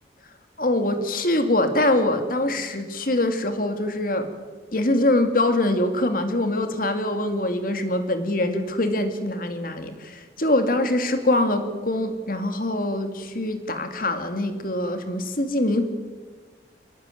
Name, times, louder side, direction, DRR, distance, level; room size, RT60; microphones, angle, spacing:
voice 1, 0.6-4.3 4.7-15.8, left 1 dB, 50° left, 7 dB, 2.5 m, -23 dB
23.5 x 20.5 x 9.3 m, 1.4 s
head